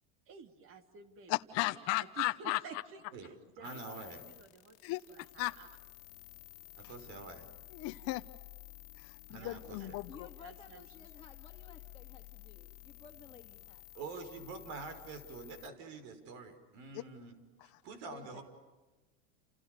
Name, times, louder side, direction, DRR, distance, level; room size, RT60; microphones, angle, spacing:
voice 1, 0.3-5.7 9.4-9.9 10.4-11.1, right 6 dB, 45° right, 8 dB, 3.0 m, -52 dB
voice 2, 1.3-2.6 4.8-5.0 5.4-5.5 7.7-8.2 9.0-10.3, left 20 dB, 55° left, 7 dB, 1.0 m, -35 dB
voice 3, 3.1-4.2 6.8-7.5 9.3-10.0 13.9-17.4 17.6-18.4, right 4 dB, 65° right, 9 dB, 5.6 m, -47 dB
sound 1, 3.6-15.7, left 21 dB, 70° left, 1.9 m, -53 dB
voice 4, 10.1-13.8 18.1-18.4, left 6 dB, 15° left, 0 dB, 2.4 m, -55 dB
30.0 x 29.0 x 6.8 m, 1.2 s
supercardioid pair, 130°, 31 cm